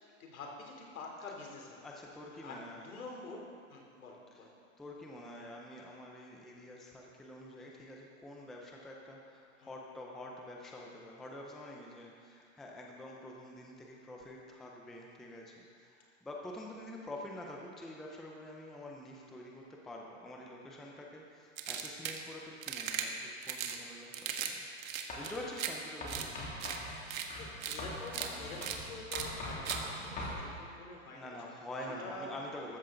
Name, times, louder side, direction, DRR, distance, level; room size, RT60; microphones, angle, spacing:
voice 1, 0.2-1.9 2.4-4.5 9.6-9.7 27.4-31.4 31.9-32.3, left 3 dB, 85° left, -1 dB, 3.4 m, -47 dB
voice 2, 1.8-2.9 4.3-4.4 4.8-26.5 30.3-30.6 31.1-32.8, left 1 dB, ahead, -1 dB, 0.4 m, -47 dB
sound 1, 21.6-22.2 22.6-23.1 23.4-23.8 24.1-24.5 24.8-25.7 26.1-26.3 26.6-26.8 27.1-27.3 27.6-27.8 28.1-28.3 28.6-28.8 29.1-29.3 29.7-29.8, right 9 dB, 70° right, 1.5 m, -37 dB
Writing, 25.1-25.5 26.0-30.4, left 1 dB, 20° left, 2.7 m, -42 dB
14.0 x 13.5 x 3.8 m, 2.3 s
hypercardioid pair, 145°, 41 cm